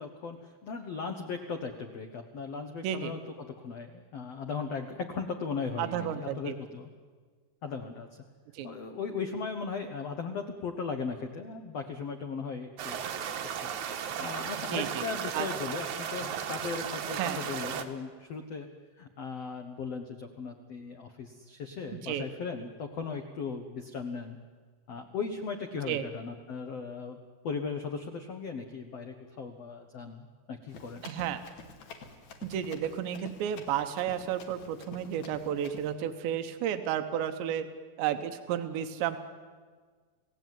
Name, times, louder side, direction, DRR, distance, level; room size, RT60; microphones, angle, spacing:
voice 1, 0.0-6.9 7.6-8.1 8.6-13.0 13.6-13.7 14.2-18.7 19.0-24.4 24.9-27.2 27.4-31.0, left 5 dB, 85° left, 6 dB, 1.4 m, -37 dB
voice 2, 5.8-6.5 8.5-8.7 14.7-15.0 15.3-15.5 17.1-17.4 21.9-22.3 25.9-26.0 31.0-31.4 32.4-37.7 38.0-39.2, right 10 dB, 85° right, 8 dB, 3.4 m, -32 dB
sound 1, 12.8-17.8, right 8 dB, 60° right, 2.1 m, -35 dB
Run, 30.7-35.9, left 5 dB, 60° left, 3.9 m, -49 dB
29.0 x 17.5 x 9.3 m, 1.6 s
omnidirectional pair, 5.0 m